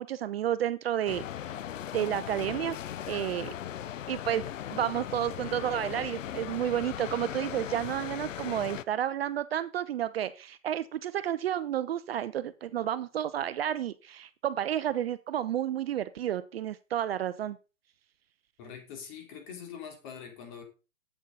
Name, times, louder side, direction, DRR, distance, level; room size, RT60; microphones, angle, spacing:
voice 1, 0.0-1.6 1.9-2.8 3.1-3.5 4.1-4.4 4.7-17.6, right 11 dB, 50° right, 15 dB, 0.5 m, -31 dB
sound 1, 1.1-8.8, left 10 dB, 70° left, 0.7 m, -38 dB
voice 2, 18.6-20.6, left 7 dB, 35° left, 3 dB, 3.1 m, -44 dB
8.1 x 7.3 x 3.9 m, 0.33 s
hypercardioid pair, 135°, 40 cm